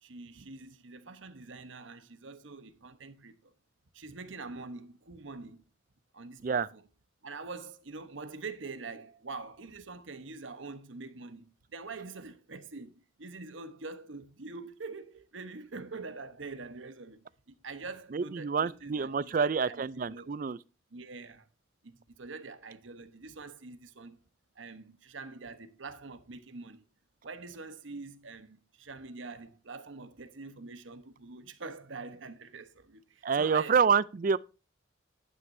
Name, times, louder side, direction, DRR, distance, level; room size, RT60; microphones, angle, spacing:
voice 1, 0.0-3.5 3.9-5.6 6.1-6.8 7.2-17.3 17.6-20.3 20.9-21.4 21.8-24.2 24.6-26.9 27.2-33.8, right 3 dB, 80° right, 1.1 m, -45 dB
voice 2, 18.1-20.6 33.2-34.4, right 5 dB, 45° right, 0.4 m, -27 dB
11.0 x 9.2 x 2.7 m
head